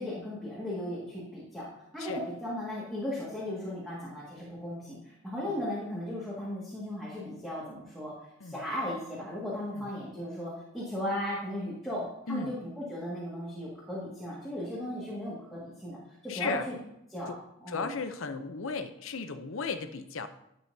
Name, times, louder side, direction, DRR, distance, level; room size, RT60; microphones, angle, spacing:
voice 1, 0.0-8.1 8.4-16.0 16.2-16.8 17.1-17.3 17.6-18.0, left 1 dB, ahead, -8 dB, 1.9 m, -36 dB
voice 2, 16.3-16.7 17.3-17.4 17.7-20.3, left 4 dB, 75° left, 9 dB, 0.7 m, -35 dB
12.0 x 7.3 x 2.7 m, 0.80 s
head